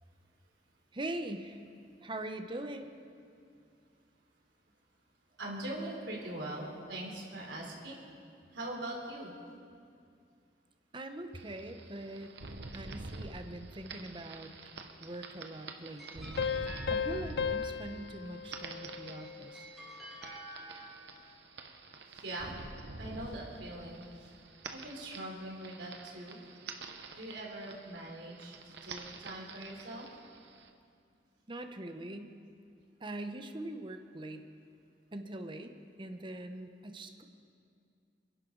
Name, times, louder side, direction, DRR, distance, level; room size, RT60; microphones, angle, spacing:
voice 1, 0.9-1.6 2.0-2.9 10.9-12.4 12.7-14.5 15.0-16.3 16.9-19.7 31.5-32.3 33.0-34.4 35.1-35.7 36.0-37.2, right 1 dB, 30° right, 7 dB, 0.9 m, -42 dB
voice 2, 5.4-8.0 8.5-9.3 22.1-22.5 23.0-24.3 24.7-26.4 27.1-30.1, right 1 dB, 85° right, -2 dB, 3.5 m, -42 dB
sound 1, 11.3-30.7, right 3 dB, 70° right, 1.1 m, -47 dB
sound 2, 15.3-17.9 18.9-21.3, equal, ahead, 3.1 m, -49 dB
Piano, 16.4-19.7, left 6 dB, 65° left, 0.5 m, -36 dB
27.5 x 11.0 x 4.0 m, 2.4 s
head